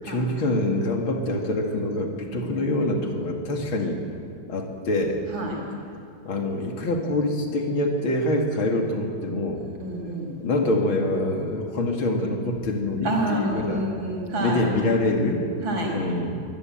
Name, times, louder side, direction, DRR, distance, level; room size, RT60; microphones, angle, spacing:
voice 1, 0.0-4.0 4.5-5.2 6.2-9.6 10.4-13.9 14.4-15.4 15.9-16.4, left 2 dB, 85° left, 2 dB, 3.1 m, -25 dB
voice 2, 2.3-2.7 5.3-5.6 9.8-10.3 13.0-14.6 15.6-15.9, right 1 dB, 70° right, -1 dB, 6.1 m, -29 dB
23.5 x 16.5 x 9.2 m, 2.3 s
omnidirectional pair, 2.2 m